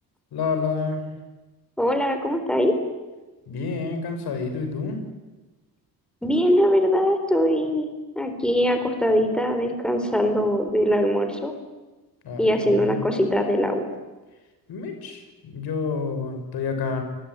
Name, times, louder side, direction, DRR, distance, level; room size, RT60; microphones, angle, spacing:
voice 1, 0.3-1.0 3.5-5.0 12.2-13.0 14.7-17.0, left 4 dB, 75° left, 6 dB, 6.7 m, -29 dB
voice 2, 1.8-2.7 6.2-7.9 8.1-11.6 12.4-13.9, equal, ahead, 6 dB, 4.1 m, -22 dB
29.0 x 21.5 x 9.7 m, 1.2 s
cardioid pair, 140°, 38 cm